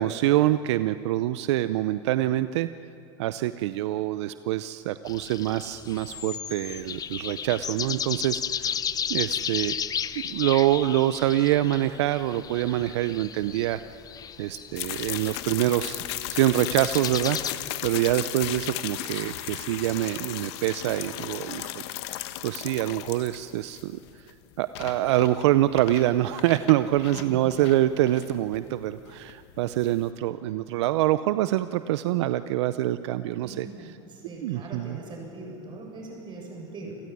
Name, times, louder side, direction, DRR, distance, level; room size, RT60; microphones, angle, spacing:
voice 1, 0.0-2.7 3.2-9.8 10.2-13.8 14.4-16.0 16.3-24.0 24.6-33.7 34.4-35.0, right 14 dB, 80° right, 13 dB, 0.7 m, -25 dB
sound 1, 5.1-17.5, left 8 dB, 25° left, 0.8 m, -34 dB
sound 2, 14.7-30.1, left 15 dB, 70° left, 1.4 m, -36 dB
voice 2, 33.4-37.0, right 3 dB, 35° right, 1 dB, 7.7 m, -41 dB
28.5 x 15.5 x 9.9 m, 2.6 s
supercardioid pair, 115°, 14 cm